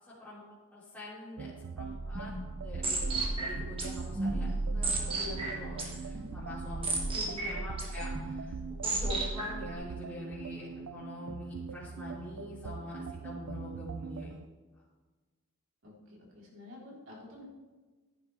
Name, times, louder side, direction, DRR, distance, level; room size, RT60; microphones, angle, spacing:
voice 1, 0.0-0.4 0.7-2.3 2.6-3.1 3.3-14.4, left 1 dB, 10° left, -11 dB, 3.0 m, -44 dB
sound 1, 1.4-14.5, right 5 dB, 90° right, 0.5 m, -43 dB
sound 2, 1.8-9.7, right 2 dB, 25° right, 1.8 m, -34 dB
voice 2, 7.1-7.4 15.8-17.4, left 1 dB, 65° right, -4 dB, 3.5 m, -48 dB
14.5 x 10.5 x 3.4 m, 1.3 s
head